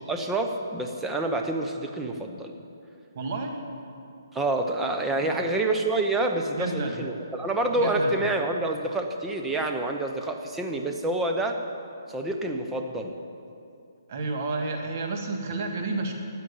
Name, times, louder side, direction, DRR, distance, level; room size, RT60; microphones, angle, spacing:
voice 1, 0.1-2.5 4.3-11.6 12.1-13.1, right 2 dB, 5° right, 3 dB, 0.7 m, -27 dB
voice 2, 3.1-3.6 5.2-5.5 6.5-7.0 7.8-8.2 14.1-16.1, right 3 dB, 40° right, 3 dB, 1.9 m, -31 dB
13.5 x 9.2 x 8.3 m, 2.5 s
hypercardioid pair, 165°, 2 cm